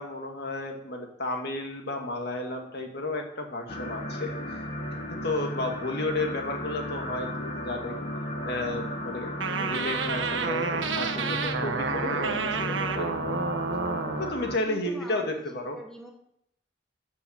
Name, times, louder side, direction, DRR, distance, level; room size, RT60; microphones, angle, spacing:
voice 1, 0.0-4.6 5.1-8.0 8.4-13.4 14.2-15.8, left 2 dB, 60° left, 3 dB, 2.1 m, -32 dB
sound 1, 3.7-14.6, left 1 dB, 40° left, 1.7 m, -35 dB
sound 2, 9.4-14.3, right 5 dB, 75° right, 1.3 m, -30 dB
voice 2, 14.7-16.1, equal, 5° left, 1 dB, 1.6 m, -43 dB
13.5 x 6.1 x 7.3 m, 0.74 s
head